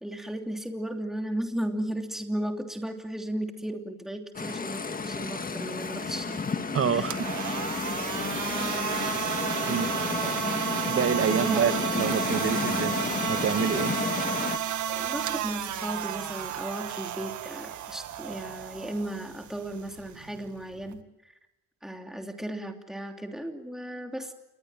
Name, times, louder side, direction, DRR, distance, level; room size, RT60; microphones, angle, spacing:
voice 1, 0.0-6.4 6.9-7.1 9.6-9.8 10.2-10.5 11.3-11.8 14.8-21.0 21.8-24.3, right 1 dB, ahead, 3 dB, 2.9 m, -35 dB
sound 1, 4.3-14.6, left 4 dB, 30° left, 1.7 m, -32 dB
voice 2, 6.7-7.3 9.7-10.1 10.9-13.0 13.3-14.3, right 7 dB, 50° right, 11 dB, 1.5 m, -28 dB
sound 2, 7.0-21.0, right 10 dB, 75° right, 1.8 m, -33 dB
28.5 x 22.0 x 7.7 m, 0.89 s
cardioid pair, 90°, 30 cm